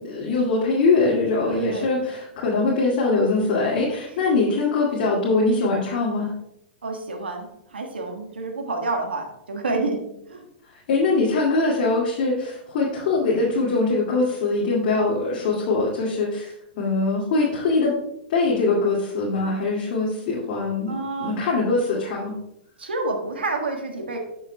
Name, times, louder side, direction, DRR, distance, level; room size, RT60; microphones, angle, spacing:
voice 1, 0.0-6.3 10.7-17.9 18.3-22.3, left 3 dB, 55° left, -4 dB, 2.2 m, -22 dB
voice 2, 1.4-1.9 4.2-4.3 6.8-10.5 20.9-21.4 22.8-24.2, right 2 dB, 85° right, 3 dB, 1.6 m, -29 dB
12.0 x 6.5 x 2.3 m, 0.81 s
hypercardioid pair, 115°, 6 cm